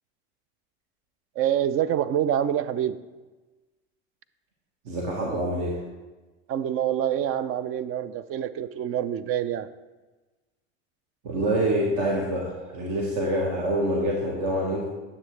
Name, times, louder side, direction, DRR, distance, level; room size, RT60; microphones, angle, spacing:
voice 1, 1.4-3.0 6.5-9.7, right 10 dB, 45° right, 14 dB, 0.4 m, -26 dB
voice 2, 4.8-5.8 11.2-14.9, right 1 dB, 60° right, -2 dB, 1.6 m, -26 dB
9.7 x 7.1 x 3.2 m, 1.2 s
hypercardioid pair, 95°, 33 cm